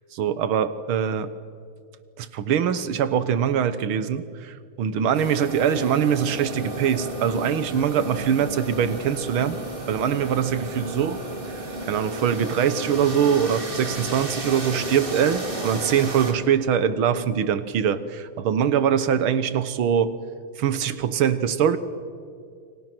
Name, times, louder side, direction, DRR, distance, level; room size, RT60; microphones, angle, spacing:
voice 1, 0.1-1.3 2.2-9.6 9.9-11.2 11.8-20.1 20.6-21.8, right 8 dB, 85° right, 13 dB, 2.0 m, -23 dB
sound 1, 5.1-16.3, right 1 dB, 25° right, 2.8 m, -33 dB
29.0 x 25.5 x 6.1 m, 2.2 s
omnidirectional pair, 2.2 m